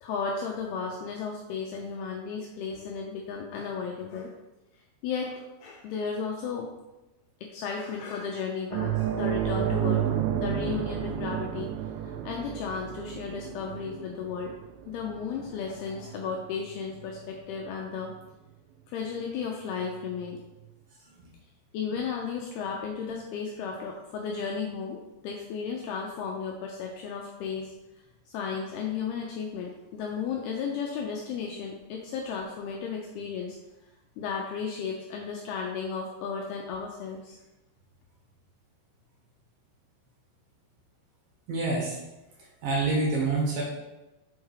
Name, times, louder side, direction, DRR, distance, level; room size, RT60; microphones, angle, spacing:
voice 1, 0.0-4.4 5.0-6.7 7.4-10.1 10.3-11.7 12.0-14.5 14.9-18.1 18.9-20.4 21.7-27.7 28.3-33.6 34.2-37.4, left 6 dB, 85° left, 0 dB, 2.3 m, -34 dB
sound 1, 8.7-17.7 18.0-18.2 20.2-20.3, right 10 dB, 85° right, 2.8 m, -32 dB
voice 2, 41.5-42.0 42.6-43.6, right 3 dB, 60° right, -4 dB, 2.9 m, -26 dB
6.4 x 4.8 x 4.8 m, 1.0 s
omnidirectional pair, 5.1 m